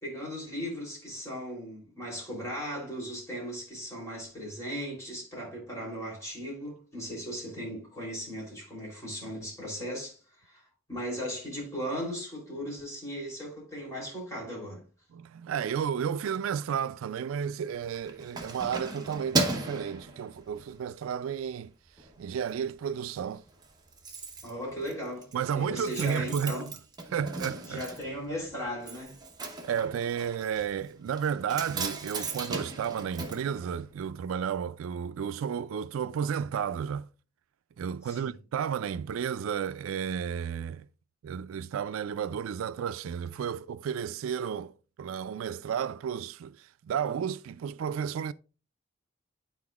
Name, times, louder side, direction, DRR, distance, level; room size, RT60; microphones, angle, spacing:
voice 1, 0.0-14.8 24.4-25.3 25.5-26.7 27.6-29.2 38.0-38.3, equal, 15° left, 3.0 m, -37 dB
voice 2, 15.1-21.7 22.2-23.4 25.3-26.7 27.1-27.8 29.6-37.1 37.8-40.9 41.2-44.7 45.0-48.3, right 7 dB, 90° right, 0.3 m, -32 dB
Keys jangling, 17.7-20.8 21.3-21.5 21.9-22.6 22.8-22.9 23.2-23.3 23.5-34.3 34.6-34.7, right 3 dB, 20° right, 0.9 m, -36 dB
11.5 x 4.3 x 2.3 m
head